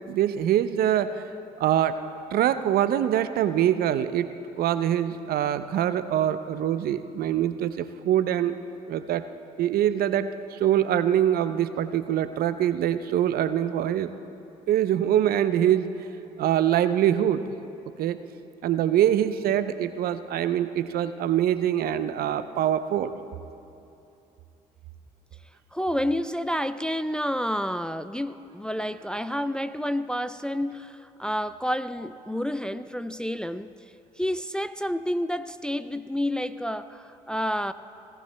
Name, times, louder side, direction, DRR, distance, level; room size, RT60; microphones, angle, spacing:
voice 1, 0.1-1.2 1.6-4.3 4.6-8.6 8.9-9.2 9.6-14.1 14.7-16.0 16.4-17.5 18.0-18.2 18.6-23.1, right 11 dB, 60° right, 12 dB, 0.5 m, -24 dB
voice 2, 25.7-33.7 34.2-37.7, equal, 5° left, 11 dB, 0.4 m, -29 dB
17.5 x 16.5 x 2.2 m, 2.8 s
hypercardioid pair, 55°, 17 cm